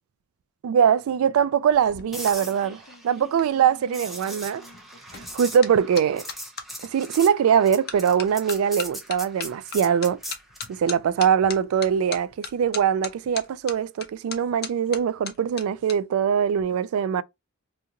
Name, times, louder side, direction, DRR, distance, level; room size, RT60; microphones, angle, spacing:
voice 1, 0.6-4.6 5.1-6.2 6.8-10.2 10.7-17.2, right 8 dB, 80° right, 0.3 m, -22 dB
sound 1, 1.7-6.7 7.3-7.6 7.9-16.0 16.2-16.6, left 7 dB, 50° left, 0.5 m, -39 dB
sound 2, 2.1-10.8 15.0-15.2, equal, ahead, 0.5 m, -40 dB
2.5 x 2.4 x 2.8 m
head